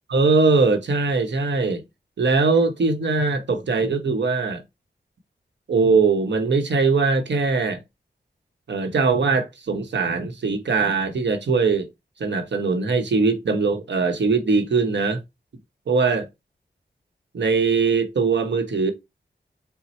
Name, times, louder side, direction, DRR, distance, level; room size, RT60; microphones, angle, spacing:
voice 1, 0.1-1.8 2.2-4.6 5.7-7.8 8.7-11.9 12.2-15.2 15.9-16.3 17.3-18.9, right 4 dB, 90° right, 0.9 m, -21 dB
4.2 x 2.0 x 4.1 m
wide cardioid pair, 75°, 18 cm